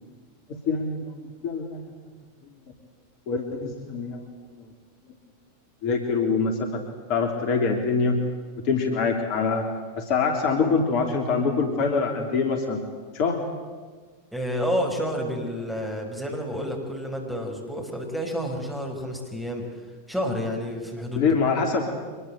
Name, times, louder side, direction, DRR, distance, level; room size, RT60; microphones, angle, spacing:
voice 1, 0.5-1.1 1.4-1.9 3.3-4.2 5.8-6.8 7.1-8.2 8.6-9.7 10.0-12.8 13.1-13.4 21.2-21.8, left 4 dB, 45° left, 4 dB, 3.2 m, -24 dB
voice 2, 14.3-19.8 20.1-21.3, equal, 5° right, 1 dB, 5.7 m, -29 dB
25.0 x 21.5 x 8.1 m, 1.5 s
figure-of-eight pair, 90°, 0 cm